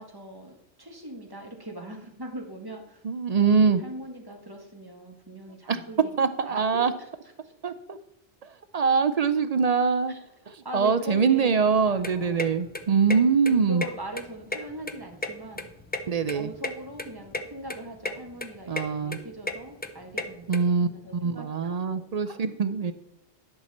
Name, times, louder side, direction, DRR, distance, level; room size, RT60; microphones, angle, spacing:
voice 1, 0.0-3.0 3.4-6.1 6.5-6.9 7.4-7.5 10.1-10.2 10.6-12.4 13.4-15.7 16.3-22.5, right 1 dB, 20° right, 1 dB, 1.6 m, -41 dB
voice 2, 3.0-3.8 5.7-5.8 6.2-6.9 7.6-8.0 8.4-10.1 10.5-13.8 16.1-16.5 18.7-19.2 20.5-22.9, right 5 dB, 55° right, 11 dB, 0.4 m, -24 dB
sound 1, 11.8-20.6, left 2 dB, 15° left, 0.4 m, -35 dB
11.0 x 5.9 x 4.2 m, 0.90 s
omnidirectional pair, 1.2 m